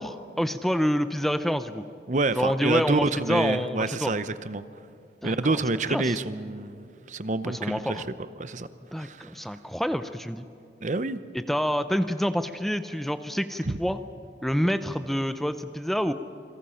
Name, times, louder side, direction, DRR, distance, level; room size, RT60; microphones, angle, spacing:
voice 1, 0.0-1.8 2.3-4.1 5.2-5.6 5.9-6.2 7.4-8.0 8.9-10.4 11.3-14.0 14.4-16.1, equal, ahead, 10 dB, 0.6 m, -27 dB
voice 2, 2.1-4.6 5.2-8.0 8.4-8.7 9.0-9.3 10.8-11.2 13.6-13.8, right 3 dB, 45° right, 13 dB, 0.8 m, -28 dB
28.5 x 22.0 x 5.7 m, 2.6 s
head